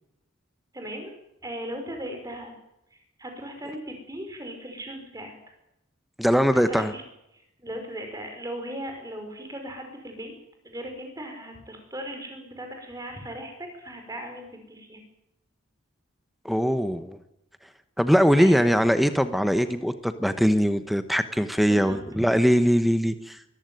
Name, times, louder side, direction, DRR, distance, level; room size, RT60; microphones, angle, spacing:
voice 1, 0.7-1.1 1.4-2.5 2.9-5.3 6.5-7.0 7.3-10.3 10.6-15.0 18.4-18.7 21.6-22.0, equal, 15° right, 4 dB, 5.2 m, -38 dB
voice 2, 6.2-6.9 16.4-17.2 18.0-23.4, equal, ahead, 10 dB, 1.0 m, -21 dB
23.5 x 14.5 x 9.3 m, 0.85 s
head